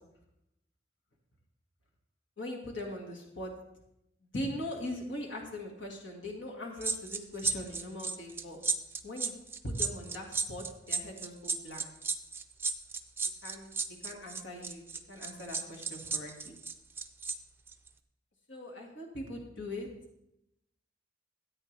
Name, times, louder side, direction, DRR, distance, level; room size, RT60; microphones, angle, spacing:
voice 1, 2.4-3.5 4.3-8.6 9.0-9.3 9.6-11.9 13.4-13.7 14.0-16.6 18.5-19.9, left 1 dB, 80° left, 1 dB, 2.0 m, -40 dB
sound 1, 6.8-17.3 17.7-17.9, right 4 dB, 10° right, 0.5 m, -34 dB
14.0 x 8.8 x 3.3 m, 0.83 s
head